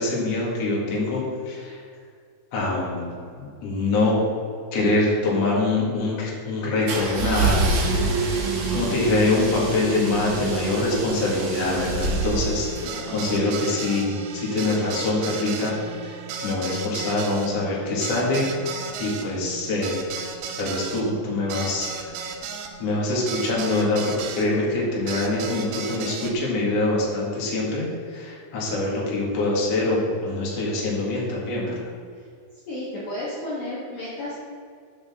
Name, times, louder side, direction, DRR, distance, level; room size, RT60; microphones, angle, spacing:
voice 1, 0.0-1.8 2.5-4.2 4.7-12.9 13.1-15.7 16.0-18.4 19.0-20.0 20.6-22.1 22.8-31.8, left 2 dB, 60° left, -4 dB, 1.7 m, -24 dB
sound 1, 6.9-12.8, right 3 dB, 65° right, 2.6 m, -26 dB
sound 2, 12.0-24.5 25.1-26.3, right 6 dB, 80° right, 3.1 m, -35 dB
voice 2, 12.8-13.2 32.1-32.2 32.7-34.3, left 1 dB, 75° left, -8 dB, 1.7 m, -33 dB
10.0 x 6.6 x 3.7 m, 2.2 s
omnidirectional pair, 6.0 m